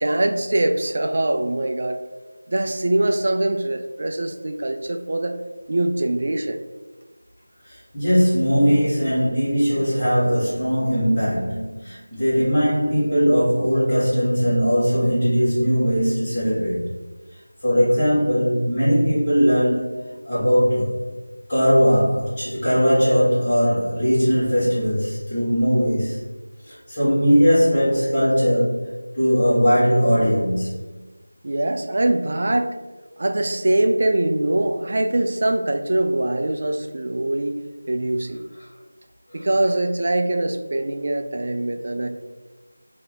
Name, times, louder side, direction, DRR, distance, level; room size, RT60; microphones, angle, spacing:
voice 1, 0.0-2.0 2.5-5.4 5.7-6.6 31.4-32.8 33.2-37.6 37.9-38.4 39.3-42.1, right 1 dB, 35° right, 6 dB, 0.3 m, -23 dB
voice 2, 7.6-16.8 17.6-21.1 21.5-26.2 26.6-31.0 38.5-38.7 39.3-39.5, equal, 15° left, -13 dB, 1.4 m, -20 dB
3.4 x 2.8 x 3.9 m, 1.2 s
figure-of-eight pair, 175°, 0 cm